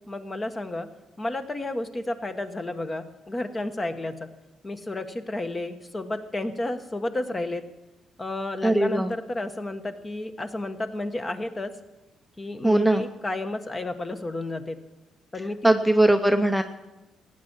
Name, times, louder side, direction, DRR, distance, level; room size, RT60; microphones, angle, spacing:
voice 1, 0.1-0.9 1.2-4.3 4.6-7.6 8.2-11.7 12.4-14.8 15.3-15.7, left 2 dB, 25° left, 8 dB, 1.1 m, -31 dB
voice 2, 8.6-9.1 12.6-13.0 15.6-16.6, right 1 dB, ahead, 6 dB, 0.7 m, -20 dB
15.5 x 9.4 x 7.3 m, 1.1 s
cardioid pair, 90°, 0 cm